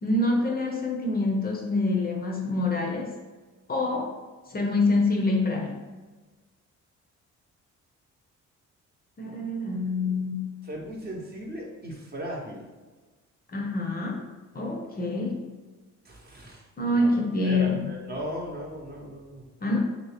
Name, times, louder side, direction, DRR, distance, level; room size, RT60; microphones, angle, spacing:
voice 1, 0.0-3.1 3.7-4.2 4.5-5.9 9.2-10.5 13.5-14.2 14.5-15.4 16.8-17.8 19.6-19.8, left 2 dB, 30° left, 0 dB, 0.5 m, -26 dB
voice 2, 10.6-12.7 16.0-16.6 16.9-19.4, equal, 30° right, -1 dB, 0.8 m, -37 dB
3.0 x 2.7 x 3.2 m, 1.3 s
cardioid pair, 90°, 30 cm